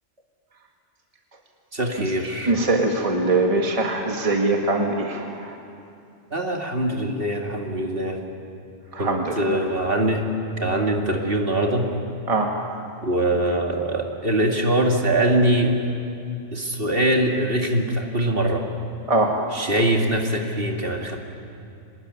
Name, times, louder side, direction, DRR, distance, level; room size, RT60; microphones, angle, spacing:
voice 1, 1.7-2.6 6.3-8.2 9.0-10.3 10.6-11.9 13.0-15.7 16.5-18.6 19.5-21.2, right 1 dB, 50° right, 1 dB, 2.6 m, -23 dB
voice 2, 2.5-5.2 9.0-9.6 12.3-12.5 19.1-19.3, right 2 dB, 30° right, 1 dB, 1.9 m, -22 dB
25.0 x 20.0 x 9.7 m, 2.6 s
omnidirectional pair, 1.2 m